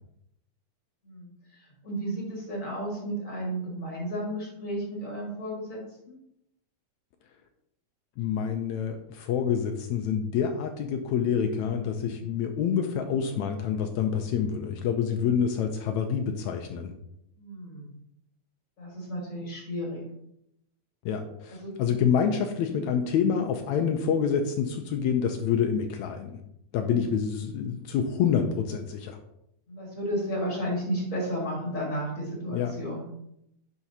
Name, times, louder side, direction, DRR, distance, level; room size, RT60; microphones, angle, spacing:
voice 1, 1.6-5.8 6.1-6.2 17.4-17.9 18.8-20.0 21.5-21.7 26.8-27.0 29.7-33.0, equal, 30° left, -3 dB, 2.1 m, -33 dB
voice 2, 8.2-16.9 21.1-26.4 26.7-29.2 32.5-32.7, left 7 dB, 80° left, 5 dB, 1.9 m, -27 dB
10.5 x 5.5 x 2.8 m, 0.78 s
omnidirectional pair, 3.4 m